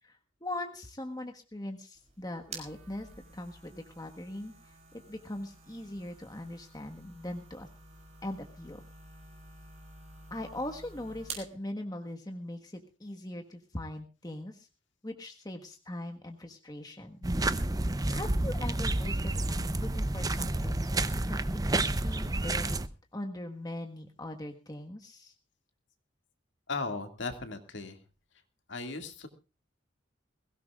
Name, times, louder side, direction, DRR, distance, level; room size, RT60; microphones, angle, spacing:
voice 1, 0.0-7.7 8.2-8.8 10.3-14.7 15.0-17.3 18.1-20.9 21.3-25.3, left 1 dB, 20° left, 4 dB, 1.5 m, -41 dB
sound 1, 1.9-11.5, right 3 dB, 35° right, 5.7 m, -49 dB
sound 2, 17.2-22.9, right 2 dB, 20° right, 0.7 m, -30 dB
voice 2, 26.7-28.0 28.7-29.3, left 3 dB, 65° left, 7 dB, 2.2 m, -37 dB
22.0 x 16.5 x 2.4 m, 0.31 s
head